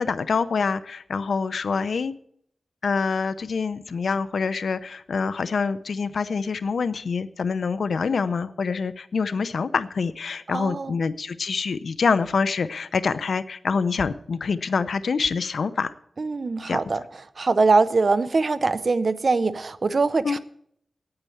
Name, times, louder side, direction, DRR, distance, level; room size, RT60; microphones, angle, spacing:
voice 1, 0.0-2.1 2.8-15.9 16.7-16.8 20.2-20.4, left 5 dB, 80° left, 14 dB, 0.6 m, -26 dB
voice 2, 10.5-11.0 16.2-17.0 17.4-20.4, right 3 dB, 55° right, 13 dB, 0.7 m, -22 dB
9.2 x 8.8 x 8.5 m, 0.67 s
wide cardioid pair, 90°, 0 cm